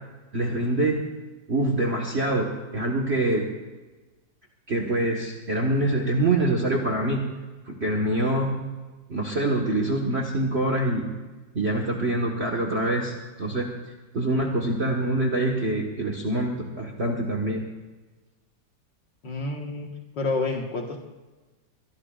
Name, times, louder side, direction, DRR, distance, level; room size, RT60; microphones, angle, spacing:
voice 1, 0.3-1.0 1.5-3.5 4.7-7.2 7.7-8.5 9.1-11.0 11.5-13.7 14.1-17.6, right 1 dB, 35° right, 1 dB, 1.7 m, -25 dB
voice 2, 19.2-19.9 20.2-21.0, left 3 dB, 70° left, 0 dB, 2.2 m, -28 dB
23.0 x 23.0 x 2.5 m, 1.2 s
omnidirectional pair, 2.0 m